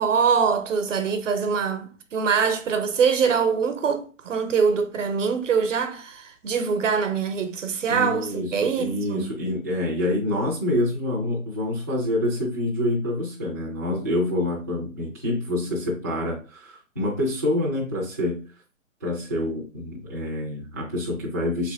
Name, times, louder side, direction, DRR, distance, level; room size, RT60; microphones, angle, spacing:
voice 1, 0.0-9.3, right 6 dB, 70° right, 0.9 m, -23 dB
voice 2, 7.9-18.4 19.0-21.7, left 1 dB, 15° right, 0.4 m, -27 dB
3.3 x 3.2 x 3.4 m
hypercardioid pair, 150°, 39 cm